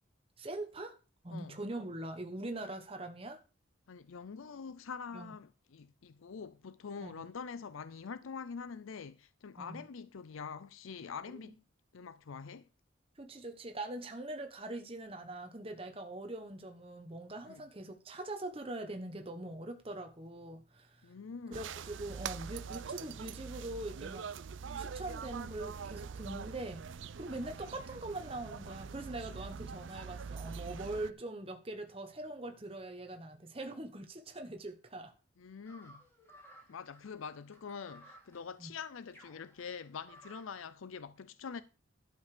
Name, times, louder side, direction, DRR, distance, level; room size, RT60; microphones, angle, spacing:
voice 1, 0.4-1.0 1.2-3.4 5.1-5.3 7.0-7.2 9.6-9.8 13.2-21.1 21.5-24.3 24.8-35.1 38.6-38.7, right 2 dB, 25° right, 1.1 m, -42 dB
voice 2, 3.9-11.6 11.9-12.7 17.5-17.6 21.0-21.6 35.4-36.0 36.7-41.6, left 6 dB, 80° left, 0.5 m, -45 dB
sound 1, 21.5-31.1, right 6 dB, 70° right, 0.4 m, -44 dB
sound 2, 35.7-40.7, right 1 dB, 10° left, 3.0 m, -58 dB
11.5 x 5.4 x 6.7 m
head